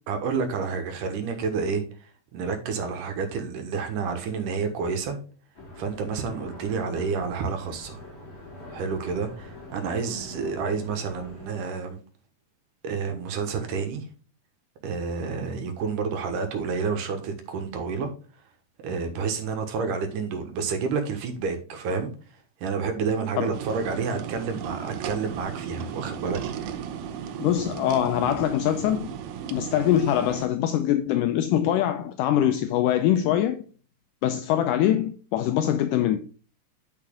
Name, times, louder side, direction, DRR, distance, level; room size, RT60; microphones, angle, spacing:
voice 1, 0.1-1.8 2.3-5.2 5.8-8.0 8.7-12.0 12.8-14.1 14.8-18.1 18.8-22.1 22.6-26.8, right 5 dB, 70° right, 2.8 m, -29 dB
sound 1, 5.6-11.5, left 2 dB, 60° left, 5.1 m, -44 dB
sound 2, 23.5-30.5, right 8 dB, 85° right, 2.6 m, -35 dB
voice 2, 27.4-29.2 29.5-33.6 34.2-36.2, left 11 dB, 80° left, 2.0 m, -23 dB
9.1 x 5.7 x 3.7 m
omnidirectional pair, 4.1 m